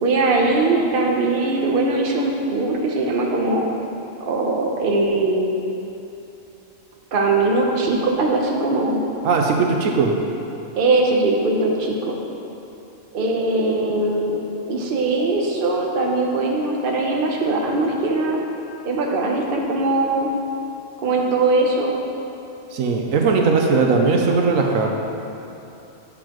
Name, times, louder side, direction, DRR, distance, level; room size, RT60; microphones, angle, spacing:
voice 1, 0.0-3.7 4.3-5.5 7.1-9.0 10.8-12.2 13.1-14.4 14.7-18.4 18.9-20.3 21.0-22.0, right 2 dB, 45° right, 0 dB, 0.9 m, -20 dB
voice 2, 9.2-10.2 22.7-24.9, right 4 dB, 85° right, 1 dB, 1.1 m, -18 dB
9.1 x 7.1 x 3.0 m, 2.9 s
omnidirectional pair, 1.4 m